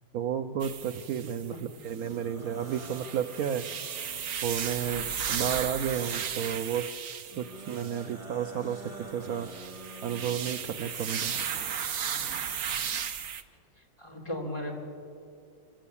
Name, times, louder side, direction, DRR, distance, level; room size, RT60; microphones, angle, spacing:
voice 1, 0.1-3.7 4.4-6.9 7.4-9.5 10.0-11.4, right 8 dB, 80° right, 8 dB, 0.8 m, -32 dB
sound 1, 0.6-2.1 2.6-8.1 9.0-13.4, right 8 dB, 55° right, 0.9 m, -35 dB
sound 2, 1.8-5.2 7.2-11.2, right 2 dB, 20° right, 1.5 m, -48 dB
voice 2, 13.8-14.8, left 1 dB, 15° left, -1 dB, 3.5 m, -36 dB
25.5 x 15.5 x 8.5 m, 2.4 s
omnidirectional pair, 2.3 m